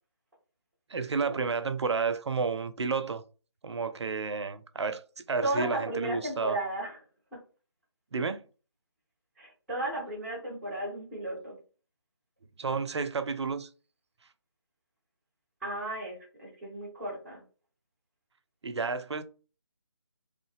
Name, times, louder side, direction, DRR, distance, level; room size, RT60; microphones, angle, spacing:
voice 1, 0.9-3.2 3.6-5.0 5.3-6.6 8.1-8.4 12.6-13.7 18.6-19.2, right 4 dB, 70° right, 0.5 m, -31 dB
voice 2, 5.4-7.0 7.3-7.4 9.4-11.6 15.6-17.4, right 1 dB, ahead, 0.4 m, -34 dB
3.1 x 2.0 x 3.2 m
figure-of-eight pair, 155°, 15 cm